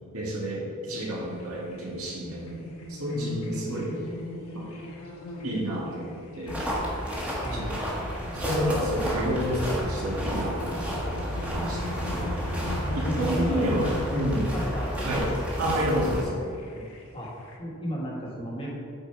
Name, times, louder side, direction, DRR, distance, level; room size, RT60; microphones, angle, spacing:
voice 1, 0.1-2.6 2.9-3.9 4.5-4.6 5.4-6.6 7.5-7.7 8.3-11.0 11.4-12.0 12.9-14.5 15.0-15.3 15.6-16.5, equal, 80° right, -3 dB, 1.7 m, -30 dB
sound 1, 0.9-17.6, left 2 dB, 75° left, 1.2 m, -41 dB
voice 2, 3.1-4.0 7.4-7.8 12.1-12.4 13.0-14.2 14.5-15.4 16.7-16.9 17.1-17.3 17.6-18.7, equal, 25° left, -4 dB, 1.3 m, -34 dB
sound 2, 6.5-16.2, equal, 5° right, 1.1 m, -31 dB
8.0 x 4.3 x 4.4 m, 2.3 s
head